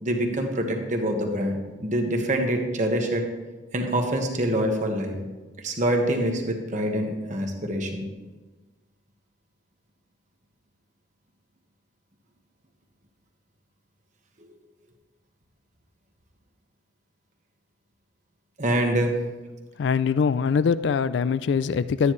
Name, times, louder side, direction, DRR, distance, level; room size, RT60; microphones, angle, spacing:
voice 1, 0.0-3.2 3.7-5.2 5.6-8.0 18.6-19.1, right 1 dB, 40° right, 3 dB, 1.2 m, -25 dB
voice 2, 19.8-22.1, left 6 dB, 65° left, 15 dB, 0.3 m, -23 dB
12.0 x 9.7 x 3.1 m, 1.2 s
head